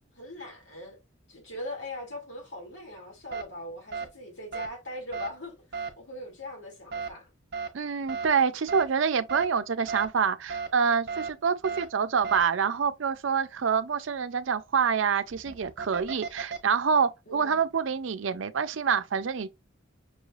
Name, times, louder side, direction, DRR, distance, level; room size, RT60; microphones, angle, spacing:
voice 1, 0.1-1.0 1.3-7.3 17.3-17.6, left 1 dB, 65° left, 2.4 m, -41 dB
sound 1, 3.3-3.4 3.9-4.1 4.5-4.7 5.1-5.3 5.7-5.9 6.9-7.1 7.5-7.7 8.1-8.3 8.7-8.8 9.3-9.4 9.9-10.1 10.5-10.7 11.1-11.3 11.6-11.8 12.2-12.4 15.2-16.6, right 5 dB, 55° right, 0.8 m, -34 dB
voice 2, 7.7-19.5, right 6 dB, 70° right, 0.5 m, -26 dB
6.0 x 3.2 x 2.4 m
head